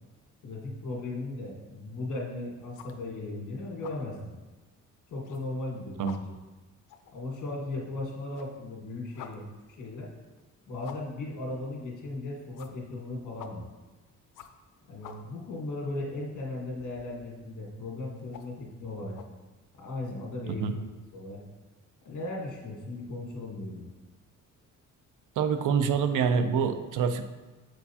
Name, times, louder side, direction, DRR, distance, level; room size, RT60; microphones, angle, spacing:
voice 1, 0.4-4.3 5.1-6.2 7.1-9.5 9.8-10.1 10.7-13.6 14.9-19.2 19.8-20.8 21.1-21.4 22.0-23.9, left 2 dB, 70° left, -2 dB, 1.6 m, -37 dB
sound 1, 2.6-3.4 3.6-4.1 4.5-4.6 5.1-5.7 5.9-8.0 8.3-19.3, left 8 dB, 90° left, 0.5 m, -50 dB
voice 2, 25.4-27.3, right 6 dB, 80° right, 9 dB, 0.6 m, -26 dB
7.5 x 4.5 x 2.8 m, 1.2 s
cardioid pair, 145°, 31 cm